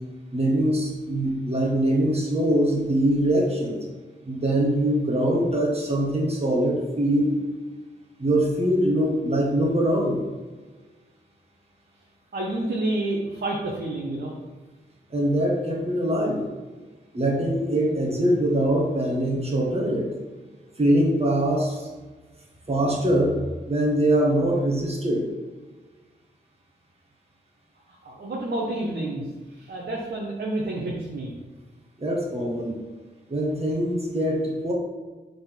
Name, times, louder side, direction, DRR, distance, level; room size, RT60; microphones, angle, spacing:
voice 1, 0.3-3.8 4.2-7.4 8.2-10.2 15.1-16.4 17.1-20.1 20.8-21.9 22.7-23.4 23.7-25.2 32.0-32.7 33.3-34.7, right 1 dB, 30° right, -2 dB, 1.5 m, -23 dB
voice 2, 12.3-14.3 27.9-31.3, right 2 dB, 55° right, -3 dB, 1.1 m, -29 dB
6.9 x 4.0 x 5.2 m, 1.3 s
wide cardioid pair, 165°, 19 cm